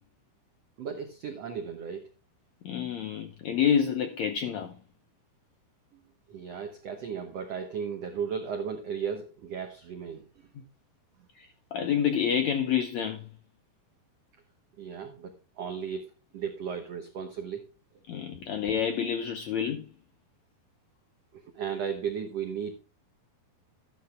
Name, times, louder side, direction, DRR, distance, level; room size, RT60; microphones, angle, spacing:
voice 1, 0.8-2.1 6.3-10.5 14.8-16.1 16.3-17.7 18.5-18.6 21.3-22.7, right 7 dB, 85° right, 1.4 m, -35 dB
voice 2, 2.6-4.7 11.3-13.3 18.1-19.8, left 8 dB, 85° left, 1.6 m, -28 dB
13.0 x 12.0 x 2.3 m
omnidirectional pair, 4.6 m